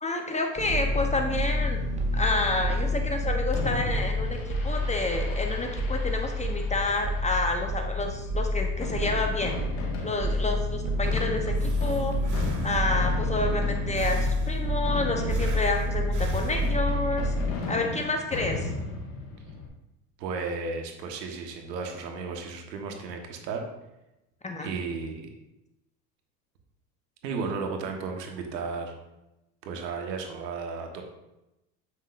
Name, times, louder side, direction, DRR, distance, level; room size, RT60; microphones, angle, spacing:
voice 1, 0.0-1.8 2.1-17.3 17.7-18.7 24.4-24.7, left 2 dB, 15° left, 3 dB, 0.8 m, -29 dB
sound 1, 0.6-17.5, left 1 dB, 15° right, 1.4 m, -28 dB
Fireworks, 3.5-19.7, left 2 dB, 60° left, 1.8 m, -37 dB
Breathing, 10.9-13.2 14.0-14.9 15.3-17.1, right 2 dB, 40° right, 1.4 m, -37 dB
voice 2, 20.2-23.6 24.6-25.3 27.2-28.9 29.6-31.0, right 4 dB, 80° right, 3 dB, 1.3 m, -34 dB
7.4 x 6.3 x 2.5 m, 0.93 s
hypercardioid pair, 85°, 49 cm